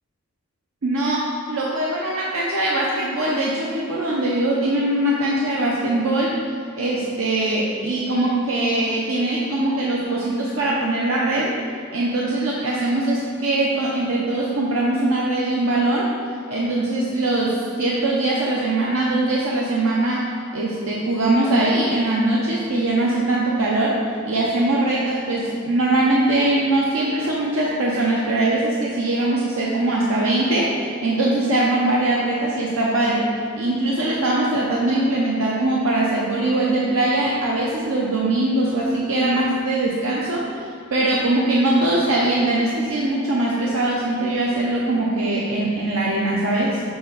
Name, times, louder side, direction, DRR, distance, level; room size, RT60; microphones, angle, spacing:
voice 1, 0.8-6.3 6.8-11.5 11.9-16.1 16.5-20.3 20.5-24.0 24.2-33.3 33.6-46.8, right 2 dB, 90° right, -4 dB, 0.7 m, -21 dB
6.9 x 4.2 x 3.9 m, 2.4 s
head